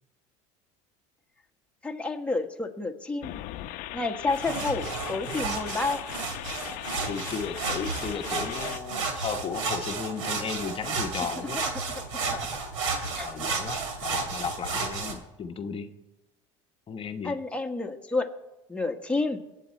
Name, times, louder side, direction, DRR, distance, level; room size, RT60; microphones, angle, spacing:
voice 1, 1.8-3.3 3.9-6.0 11.4-11.5 12.1-12.5 13.1-13.3 17.2-18.3 18.7-19.4, left 3 dB, 5° left, 2 dB, 1.4 m, -30 dB
sound 1, 3.2-8.8, left 15 dB, 60° left, 0.7 m, -39 dB
sound 2, 4.3-15.1, right 4 dB, 90° right, 2.5 m, -32 dB
voice 2, 6.8-11.9 13.0-15.9 16.9-17.4, left 6 dB, 35° left, 6 dB, 1.1 m, -35 dB
21.0 x 8.4 x 4.4 m, 1.0 s
supercardioid pair, 95°, 16 cm